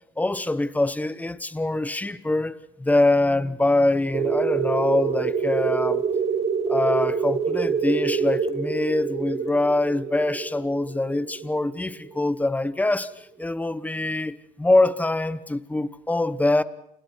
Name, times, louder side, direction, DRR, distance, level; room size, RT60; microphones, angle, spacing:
voice 1, 0.2-6.0 6.7-16.6, left 2 dB, 10° left, 1.1 m, -24 dB
sound 1, 4.1-12.5, right 6 dB, 40° right, 3.7 m, -26 dB
29.5 x 27.5 x 4.7 m
cardioid pair, 110°, 17 cm